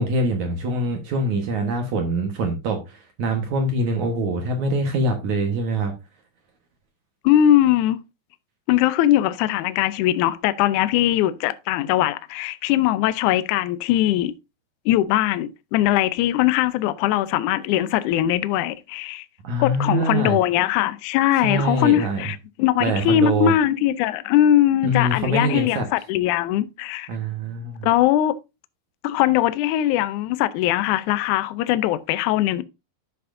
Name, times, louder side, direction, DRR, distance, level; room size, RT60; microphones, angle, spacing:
voice 1, 0.0-5.9 19.4-20.4 21.4-22.2 22.8-23.5 24.8-25.9 27.1-27.9, right 1 dB, 60° right, 2.4 m, -24 dB
voice 2, 7.2-8.0 8.7-14.3 14.9-19.3 19.6-27.1 27.8-28.4 29.0-32.6, left 12 dB, 75° left, 1.9 m, -20 dB
12.0 x 6.9 x 2.6 m
omnidirectional pair, 4.1 m